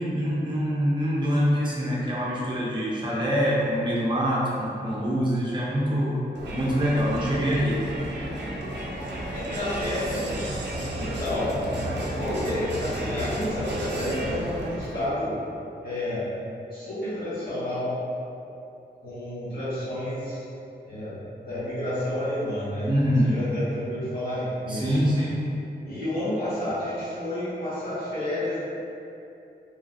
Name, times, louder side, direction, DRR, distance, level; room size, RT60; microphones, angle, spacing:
voice 1, 0.0-6.2 6.5-7.8 22.8-23.4 24.7-25.5, equal, 25° right, -6 dB, 0.6 m, -25 dB
Crowd, 6.3-15.2, right 1 dB, 85° right, 0.4 m, -32 dB
voice 2, 9.2-10.4 10.9-11.7 11.9-15.4 15.8-16.2 16.7-17.9 19.0-20.4 20.9-22.9 23.2-24.8 25.8-28.6, left 1 dB, 60° left, -14 dB, 1.4 m, -30 dB
3.1 x 2.4 x 2.5 m, 2.8 s
wide cardioid pair, 155°, 18 cm